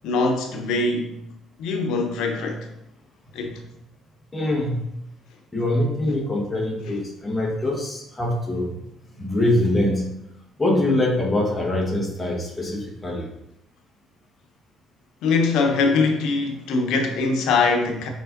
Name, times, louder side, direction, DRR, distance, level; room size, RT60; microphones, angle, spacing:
voice 1, 0.0-1.2 1.6-2.6 3.3-3.6 15.2-18.1, left 3 dB, 75° left, 0.9 m, -22 dB
voice 2, 4.3-4.8 5.5-8.8 9.2-10.1 10.6-13.3, left 1 dB, 10° left, 1.3 m, -23 dB
5.5 x 5.1 x 3.8 m
cardioid pair, 165°, 0 cm